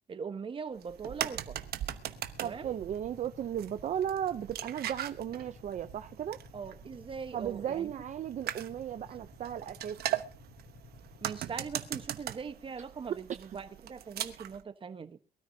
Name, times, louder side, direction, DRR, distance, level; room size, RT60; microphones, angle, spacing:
voice 1, 0.1-1.6 2.4-2.7 6.5-7.9 11.2-15.2, right 6 dB, 30° right, 1.2 m, -41 dB
sound 1, 0.8-14.6, right 11 dB, 75° right, 1.0 m, -40 dB
Motorcycle / Idling, 1.4-12.1, left 4 dB, 80° left, 6.4 m, -55 dB
voice 2, 2.4-6.4 7.3-10.0 13.1-13.2, right 9 dB, 50° right, 0.6 m, -35 dB
23.0 x 13.0 x 2.8 m
cardioid pair, 145°, 16 cm